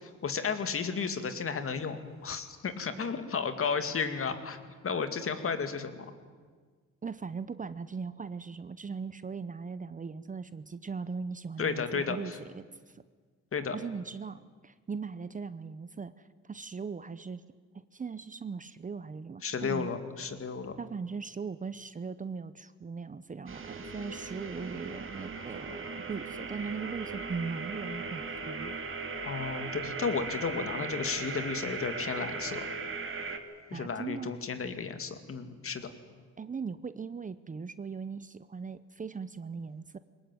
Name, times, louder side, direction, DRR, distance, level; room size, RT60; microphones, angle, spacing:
voice 1, 0.0-4.6 4.8-6.0 11.6-12.4 13.5-13.8 19.4-20.7 29.2-32.7 33.7-35.9, left 5 dB, 45° left, 9 dB, 2.3 m, -33 dB
voice 2, 7.0-13.0 13.7-17.4 17.7-19.9 20.8-28.7 33.7-34.3 36.4-40.0, right 5 dB, 25° right, 15 dB, 0.8 m, -39 dB
sound 1, 23.5-33.4, right 4 dB, 45° right, 2.4 m, -38 dB
22.5 x 19.0 x 9.2 m, 1.5 s
cardioid pair, 90°, 30 cm